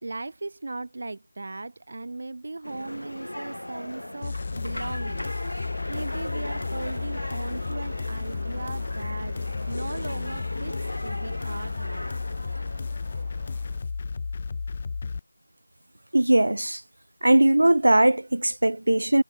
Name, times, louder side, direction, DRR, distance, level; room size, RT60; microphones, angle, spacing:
voice 1, 0.0-5.6 5.9-9.3 9.7-10.8 11.0-12.1, right 2 dB, 45° right, 3.2 m, -37 dB
sound 1, 2.6-13.9, left 1 dB, 85° left, 4.3 m, -38 dB
sound 2, 4.2-15.2, left 4 dB, 25° left, 1.5 m, -33 dB
sound 3, 6.7-13.8, right 10 dB, 15° right, 5.6 m, -56 dB
voice 2, 16.1-16.8 17.2-19.2, right 1 dB, 70° right, 0.8 m, -19 dB
figure-of-eight pair, 170°, 0 cm